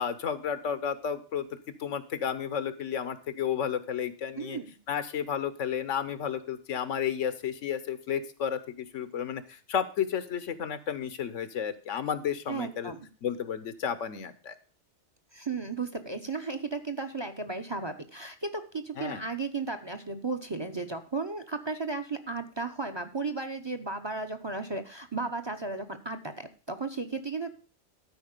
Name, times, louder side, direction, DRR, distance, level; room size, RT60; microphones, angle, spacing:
voice 1, 0.0-1.5 1.8-4.6 4.9-12.9 13.2-14.5 19.0-19.2, left 8 dB, 85° left, 12 dB, 1.3 m, -32 dB
voice 2, 4.4-4.7 12.5-13.1 15.3-27.5, right 3 dB, 25° right, 9 dB, 0.7 m, -34 dB
12.5 x 4.7 x 6.6 m, 0.37 s
omnidirectional pair, 1.2 m